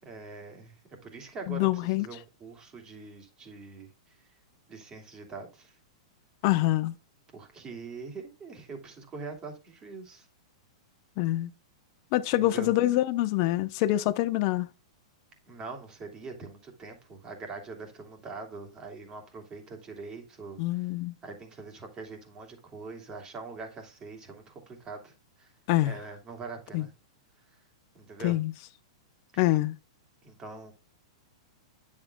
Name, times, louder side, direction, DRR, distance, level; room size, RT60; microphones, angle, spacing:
voice 1, 0.0-4.2 4.7-5.7 7.3-10.3 12.3-12.7 15.5-20.9 21.2-25.5 25.8-26.9 27.9-28.4 30.2-30.7, right 4 dB, 25° right, 2.9 m, -43 dB
voice 2, 1.5-2.1 6.4-6.9 11.2-11.5 12.1-14.7 20.6-21.1 25.7-26.0 26.7-26.9 28.2-28.5 29.4-29.7, left 16 dB, 50° left, 0.8 m, -25 dB
9.6 x 7.4 x 2.3 m
hypercardioid pair, 125°, 3 cm